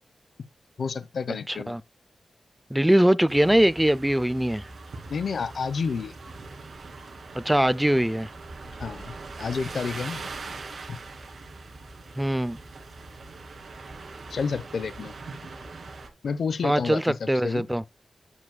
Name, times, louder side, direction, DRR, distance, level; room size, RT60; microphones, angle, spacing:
voice 1, 0.8-1.8 5.1-6.1 8.8-10.2 10.9-11.0 14.3-15.1 16.2-17.7, left 5 dB, 75° left, 0.8 m, -30 dB
voice 2, 1.5-1.8 2.7-4.6 7.3-8.3 12.2-12.6 16.6-17.8, right 1 dB, 5° right, 0.4 m, -22 dB
sound 1, 3.3-16.1, right 3 dB, 65° right, 2.5 m, -41 dB
9.8 x 7.3 x 2.2 m
wide cardioid pair, 125°, 0 cm